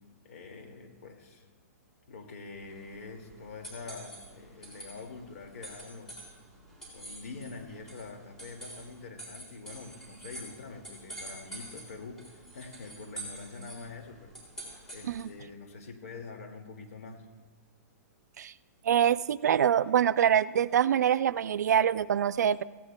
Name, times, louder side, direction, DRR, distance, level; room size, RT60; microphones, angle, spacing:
voice 1, 0.2-1.5 2.1-6.2 6.9-14.3 14.9-17.3, left 4 dB, 60° left, 4 dB, 2.1 m, -45 dB
sound 1, 2.6-15.4, right 1 dB, 5° left, 3.6 m, -47 dB
voice 2, 18.8-22.6, right 9 dB, 85° right, 16 dB, 0.4 m, -25 dB
17.0 x 16.0 x 2.2 m, 1.4 s
hypercardioid pair, 165°, 9 cm